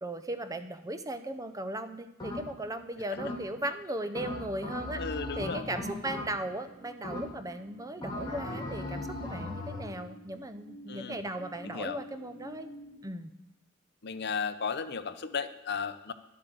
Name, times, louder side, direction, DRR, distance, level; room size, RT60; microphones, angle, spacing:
voice 1, 0.0-5.0 5.4-12.7 13.0-13.3, right 1 dB, 15° right, 9 dB, 0.6 m, -37 dB
sound 1, 2.2-2.7 3.2-3.7 4.1-6.6 7.0-7.6 8.0-9.9, left 1 dB, 20° left, 2.7 m, -38 dB
voice 2, 5.0-5.6 10.9-11.2 11.6-12.0 14.0-16.1, left 5 dB, 50° left, 10 dB, 0.7 m, -35 dB
sound 2, 6.3-13.0, right 1 dB, 45° right, 4.9 m, -52 dB
10.5 x 7.9 x 7.7 m, 0.95 s
head